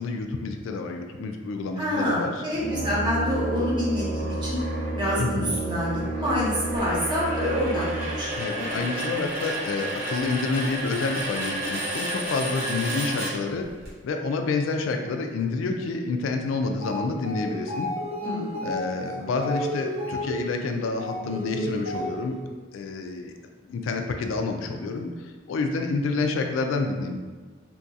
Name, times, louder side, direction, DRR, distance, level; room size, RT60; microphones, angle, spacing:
voice 1, 0.0-2.4 5.2-5.5 8.4-13.7 14.0-17.9 18.6-22.4 22.7-23.3 23.7-27.2, left 3 dB, 85° left, 4 dB, 0.3 m, -28 dB
voice 2, 1.8-4.6 4.9-8.8 18.2-18.7, left 1 dB, 25° right, -7 dB, 0.8 m, -27 dB
Brass instrument, 2.5-8.3, right 2 dB, 30° left, 0.6 m, -31 dB
sound 1, 3.3-13.9, right 1 dB, 50° right, 1.1 m, -32 dB
sound 2, 16.7-22.5, equal, 90° right, 0.7 m, -32 dB
2.9 x 2.3 x 2.7 m, 1.3 s
head